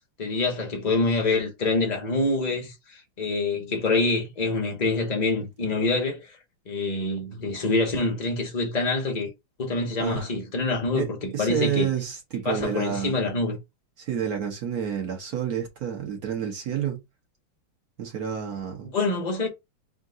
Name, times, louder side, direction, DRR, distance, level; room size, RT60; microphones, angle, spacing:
voice 1, 0.2-6.4 6.7-9.3 9.6-11.9 12.4-13.6 18.8-19.5, left 3 dB, 80° left, 0.3 m, -26 dB
voice 2, 10.9-13.2 14.0-17.0 18.0-18.9, right 8 dB, 55° right, 1.3 m, -29 dB
3.7 x 2.6 x 3.8 m
omnidirectional pair, 2.3 m